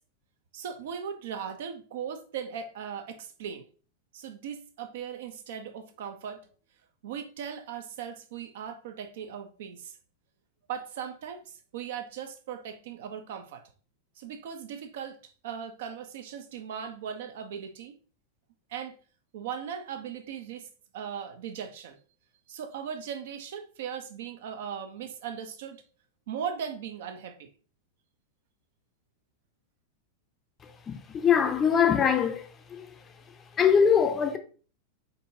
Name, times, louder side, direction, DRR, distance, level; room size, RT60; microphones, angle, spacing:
voice 1, 0.5-3.6 4.1-6.4 7.0-9.9 10.7-11.4 11.7-13.6 14.2-17.9 18.7-18.9 19.3-20.7 20.9-22.0 22.5-25.8 26.3-27.5, right 8 dB, 55° right, 0.7 m, -38 dB
voice 2, 30.9-32.5 33.6-34.4, left 7 dB, 25° left, 0.6 m, -22 dB
4.5 x 4.0 x 2.6 m
figure-of-eight pair, 90°, 0 cm